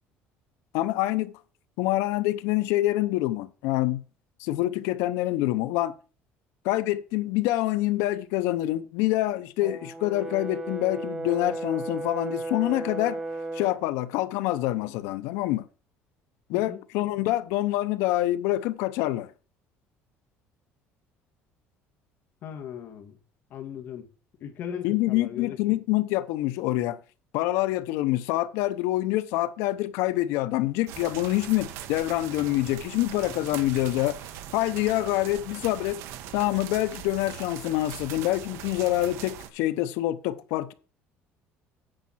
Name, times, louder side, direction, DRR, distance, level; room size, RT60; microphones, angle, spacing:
voice 1, 0.7-1.3 1.8-4.0 4.4-5.9 6.6-13.2 13.5-15.6 16.5-19.3 24.8-27.0 27.3-34.2 34.5-36.0 36.3-40.7, left 16 dB, 85° left, 0.8 m, -26 dB
Brass instrument, 9.6-13.8, right 2 dB, 15° right, 0.9 m, -34 dB
voice 2, 16.5-16.8 22.4-23.2 23.5-24.1 24.4-25.6, left 8 dB, 45° left, 1.6 m, -38 dB
sound 1, 30.9-39.5, right 10 dB, 70° right, 0.9 m, -41 dB
9.0 x 5.7 x 5.7 m
cardioid pair, 170°, 5 cm